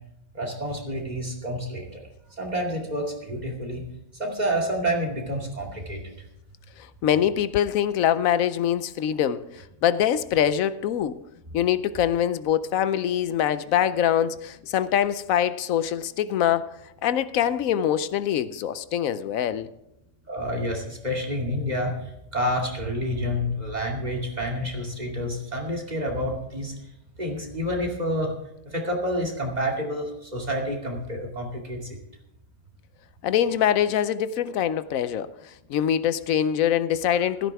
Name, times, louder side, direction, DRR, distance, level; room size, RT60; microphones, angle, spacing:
voice 1, 0.3-2.1 2.4-3.8 4.2-6.0 20.3-21.9 22.3-26.7 27.2-28.3 28.7-32.0, equal, 30° right, 0 dB, 2.6 m, -28 dB
voice 2, 6.8-11.2 11.5-16.7 17.0-19.7 33.2-37.5, left 10 dB, 85° left, 14 dB, 1.1 m, -24 dB
15.5 x 13.5 x 3.5 m, 0.86 s
omnidirectional pair, 1.4 m